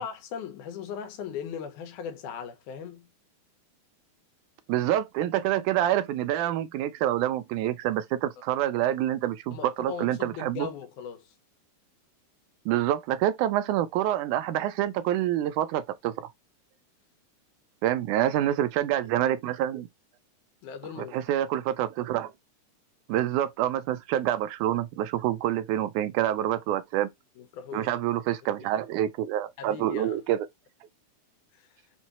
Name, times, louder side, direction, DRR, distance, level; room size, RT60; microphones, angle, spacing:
voice 1, 0.0-3.1 9.5-11.3 18.5-18.6 20.6-21.1 27.4-27.9 28.7-28.8 29.6-30.2 31.5-31.7, left 7 dB, 85° left, 2.4 m, -38 dB
voice 2, 4.7-10.7 12.7-16.3 17.8-19.9 21.0-22.3 23.1-27.1 27.7-30.5, right 12 dB, 85° right, 2.1 m, -27 dB
6.0 x 2.6 x 3.0 m
omnidirectional pair, 3.5 m